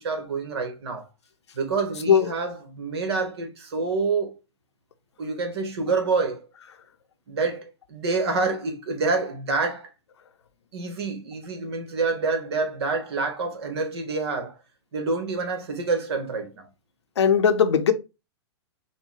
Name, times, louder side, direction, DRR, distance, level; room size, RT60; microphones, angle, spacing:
voice 1, 0.0-1.1 1.5-4.3 5.2-6.4 7.3-9.9 10.7-14.6 14.9-16.6, right 4 dB, 65° right, 1.2 m, -27 dB
voice 2, 17.2-17.9, left 7 dB, 75° left, 0.7 m, -18 dB
4.2 x 2.2 x 3.6 m
figure-of-eight pair, 105°, 14 cm